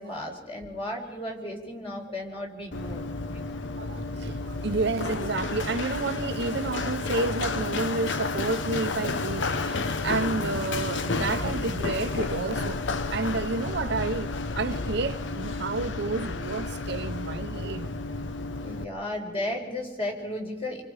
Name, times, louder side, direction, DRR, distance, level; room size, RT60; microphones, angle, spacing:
voice 1, 0.0-3.6 18.6-20.8, left 1 dB, 30° left, 4.4 m, -34 dB
Run, 2.7-18.8, left 3 dB, 85° left, 0.9 m, -31 dB
voice 2, 3.8-12.8 13.1-17.9 18.8-18.9, right 3 dB, 65° right, 0.7 m, -30 dB
27.5 x 24.5 x 4.9 m
head